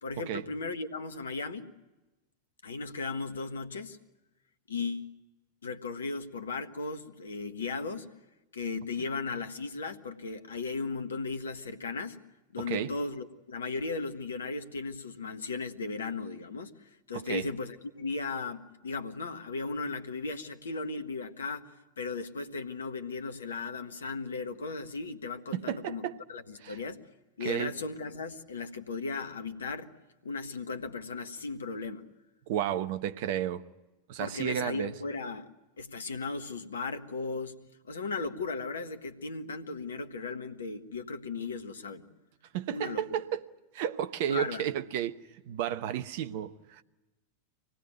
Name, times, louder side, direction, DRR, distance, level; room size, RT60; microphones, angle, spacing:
voice 1, 0.0-1.7 2.6-4.0 4.7-5.1 5.6-8.1 8.5-12.2 12.5-27.0 27.4-29.9 30.2-32.1 34.2-35.5 35.8-42.1 42.7-43.0 44.3-44.7, left 4 dB, 70° left, 1.5 m, -36 dB
voice 2, 17.1-17.5 25.5-26.2 26.6-26.8 27.4-27.7 32.5-33.6 34.1-34.9 42.5-43.4 43.7-46.8, right 10 dB, 50° right, 1.0 m, -32 dB
25.0 x 19.0 x 9.3 m
figure-of-eight pair, 90°, 0 cm